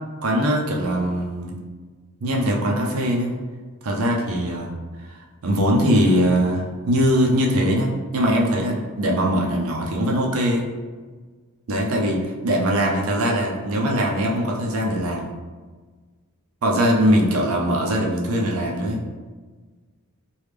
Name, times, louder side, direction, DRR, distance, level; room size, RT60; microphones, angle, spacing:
voice 1, 0.2-1.5 2.2-3.4 3.8-4.7 5.0-10.7 11.7-15.3 16.6-19.0, equal, 70° right, -1 dB, 0.5 m, -21 dB
3.3 x 2.3 x 3.2 m, 1.4 s
head